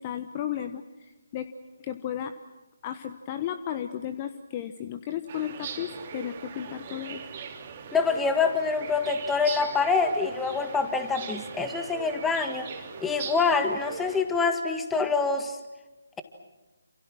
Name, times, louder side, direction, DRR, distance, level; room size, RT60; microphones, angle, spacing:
voice 1, 0.0-1.5 1.8-2.3 2.8-7.2, left 10 dB, 25° left, 9 dB, 1.1 m, -34 dB
sound 1, 5.3-14.2, right 6 dB, 30° right, 3.4 m, -40 dB
voice 2, 7.9-12.7 13.0-15.6, left 4 dB, 5° left, 7 dB, 1.8 m, -26 dB
29.0 x 28.0 x 6.3 m, 1.1 s
figure-of-eight pair, 145°, 0 cm